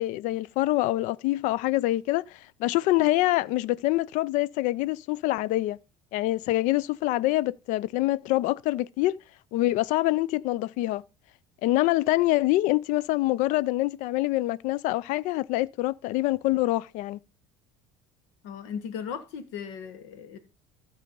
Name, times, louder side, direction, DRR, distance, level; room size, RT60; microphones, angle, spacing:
voice 1, 0.0-5.8 6.1-9.1 9.5-11.0 11.6-17.2, left 17 dB, 65° left, 0.4 m, -25 dB
voice 2, 18.4-20.4, left 7 dB, 85° left, 1.5 m, -37 dB
14.5 x 4.9 x 5.2 m
supercardioid pair, 100°, 14 cm